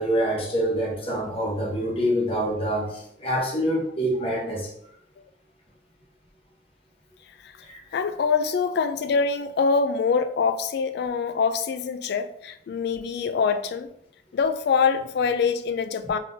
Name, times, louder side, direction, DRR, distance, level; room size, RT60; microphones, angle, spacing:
voice 1, 0.0-4.7 7.7-7.8, equal, 30° left, 1.0 m, -26 dB
voice 2, 7.9-13.9 14.3-16.2, left 5 dB, 60° left, 0.3 m, -24 dB
3.8 x 3.7 x 2.7 m
head